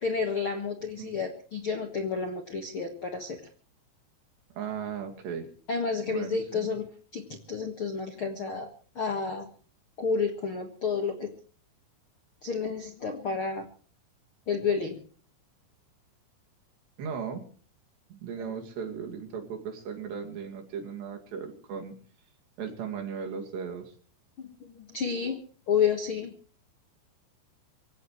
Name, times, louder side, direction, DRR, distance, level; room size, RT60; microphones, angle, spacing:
voice 1, 0.0-3.4 5.7-6.8 7.1-7.2 7.5-8.7 8.9-9.5 10.0-11.3 12.4-13.6 14.5-15.0 24.4-25.4 25.7-26.3, left 5 dB, 55° left, 4 dB, 1.5 m, -30 dB
voice 2, 4.6-5.5 6.1-6.8 17.0-17.5 18.1-21.9 22.6-23.9, right 6 dB, 75° right, 4 dB, 4.5 m, -37 dB
25.0 x 16.0 x 3.2 m, 0.41 s
omnidirectional pair, 4.9 m